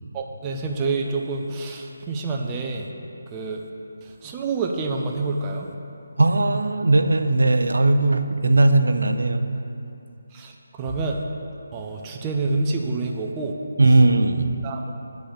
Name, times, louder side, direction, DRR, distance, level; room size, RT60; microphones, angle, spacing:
voice 1, 0.1-2.9 3.3-3.6 4.2-5.7 10.3-11.2 11.7-13.5 14.6-14.9, right 3 dB, 20° right, 1 dB, 0.5 m, -27 dB
voice 2, 6.2-9.4 13.8-14.5, right 2 dB, 70° right, 8 dB, 0.5 m, -18 dB
8.3 x 3.9 x 6.5 m, 2.7 s
figure-of-eight pair, 155°, 0 cm